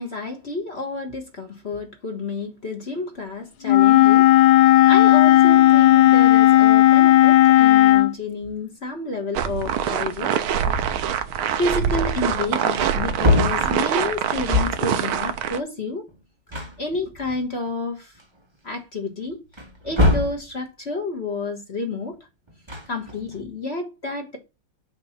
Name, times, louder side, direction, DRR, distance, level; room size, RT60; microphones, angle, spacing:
voice 1, 0.0-4.3 4.6-10.4 11.6-16.0 16.8-18.1 18.6-19.4 19.8-22.2 22.9-24.4, left 3 dB, 35° left, 1.4 m, -30 dB
Wind instrument woodwind instrument, 3.7-8.1, left 14 dB, 70° left, 1.1 m, -13 dB
sound 1, 9.3-15.6, right 8 dB, 80° right, 1.7 m, -24 dB
Wood, 12.3-12.4 12.7-15.0 16.1-16.2 16.5-17.7 18.2-18.3 19.5-20.5 22.5-23.4, left 2 dB, 20° right, 0.8 m, -24 dB
7.0 x 3.4 x 5.7 m
omnidirectional pair, 2.3 m